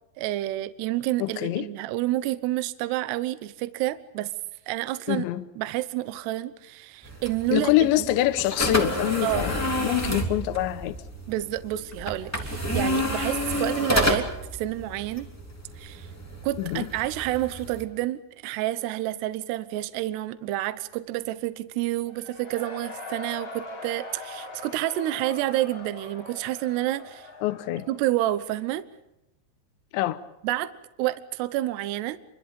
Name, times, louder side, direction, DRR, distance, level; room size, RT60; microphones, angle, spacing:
voice 1, 0.2-4.3 4.7-5.3 5.6-8.1 9.2-9.5 11.3-14.3 14.5-15.3 15.8-16.1 16.4-27.3 27.9-28.8 30.4-30.7 31.0-32.2, right 15 dB, 75° right, 2.5 m, -29 dB
voice 2, 1.2-1.7 5.1-5.5 7.5-11.0 16.6-16.9 27.4-27.9 29.9-30.2, left 14 dB, 75° left, 2.9 m, -25 dB
sound 1, 7.0-17.8, equal, 10° left, 0.9 m, -30 dB
Cheering / Crowd, 22.1-28.8, left 3 dB, 40° left, 6.7 m, -42 dB
28.5 x 24.0 x 5.4 m
omnidirectional pair, 6.0 m